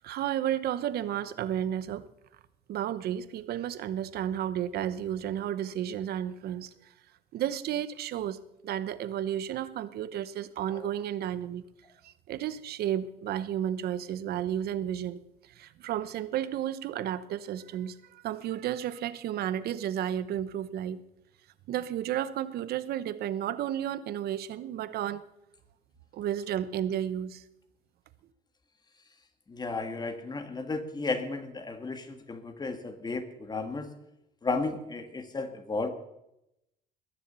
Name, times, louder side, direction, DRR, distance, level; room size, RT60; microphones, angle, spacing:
voice 1, 0.0-2.0 2.7-6.7 7.3-8.4 8.6-11.6 12.0-21.0 21.7-25.2 26.1-27.4, right 10 dB, 70° right, 15 dB, 0.9 m, -32 dB
voice 2, 29.5-33.9 34.4-35.9, left 3 dB, 25° left, 8 dB, 1.8 m, -34 dB
21.0 x 7.2 x 6.9 m, 0.86 s
cardioid pair, 110°, 17 cm